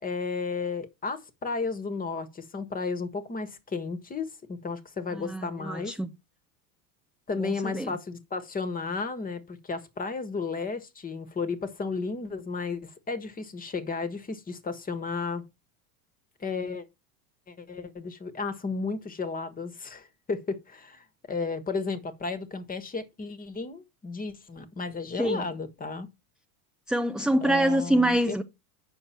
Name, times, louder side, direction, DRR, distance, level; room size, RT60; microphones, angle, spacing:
voice 1, 0.0-6.0 7.3-15.4 16.4-16.8 17.5-26.1 27.4-28.4, left 4 dB, 20° left, 1.4 m, -33 dB
voice 2, 5.3-6.1 7.4-7.9 25.2-25.4 26.9-28.4, right 1 dB, ahead, 0.4 m, -25 dB
9.0 x 6.4 x 4.3 m
supercardioid pair, 115°, 46 cm